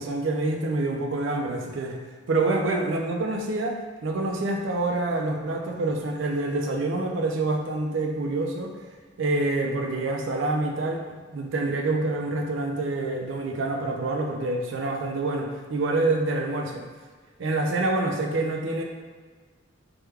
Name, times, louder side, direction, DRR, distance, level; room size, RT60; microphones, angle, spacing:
voice 1, 0.0-2.0 2.3-8.7 9.2-16.8 17.4-18.8, right 2 dB, 65° right, 2 dB, 0.4 m, -27 dB
3.4 x 2.2 x 3.2 m, 1.5 s
head